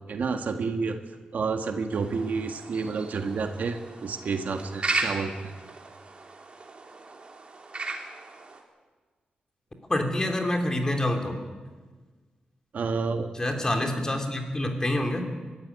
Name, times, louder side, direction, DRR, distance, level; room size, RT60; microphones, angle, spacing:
voice 1, 0.1-1.0 1.3-5.3 12.7-13.3, right 4 dB, 65° right, 5 dB, 1.6 m, -29 dB
sound 1, 1.9-8.6, right 3 dB, 35° right, 3.3 m, -36 dB
voice 2, 9.9-11.4 13.3-15.2, left 1 dB, 20° left, 3 dB, 3.1 m, -27 dB
23.5 x 13.5 x 9.9 m, 1.4 s
wide cardioid pair, 125°, 3 cm